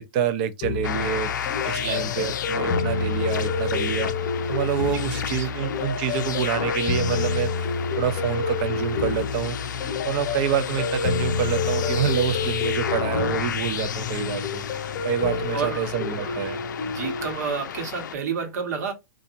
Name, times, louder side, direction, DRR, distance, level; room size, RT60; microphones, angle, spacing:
voice 1, 0.1-1.3 1.6-4.1 4.5-7.7 8.0-9.6 10.0-16.6, right 9 dB, 35° right, 0.4 m, -27 dB
sound 1, 0.6-17.3, left 4 dB, 40° left, 0.8 m, -29 dB
sound 2, 0.8-18.2, left 9 dB, 90° left, 0.4 m, -32 dB
voice 2, 1.8-2.1 5.1-5.5 15.5-15.9 16.2-16.4 16.8-18.9, right 6 dB, 60° right, 1.0 m, -30 dB
2.7 x 2.3 x 2.4 m
hypercardioid pair, 160°, 10 cm